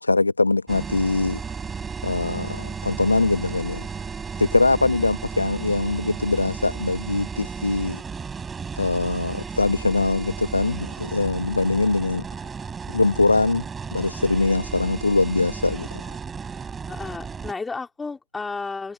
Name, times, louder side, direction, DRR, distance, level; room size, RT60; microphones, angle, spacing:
voice 1, 0.0-1.4 2.0-3.8 4.4-8.0 8.8-12.2 12.9-13.6 13.9-15.9, left 3 dB, 85° left, 1.4 m, -22 dB
sound 1, 0.7-17.5, right 5 dB, 10° right, 6.2 m, -34 dB
voice 2, 16.9-18.9, left 4 dB, 5° left, 3.4 m, -32 dB
figure-of-eight pair, 135°, 0 cm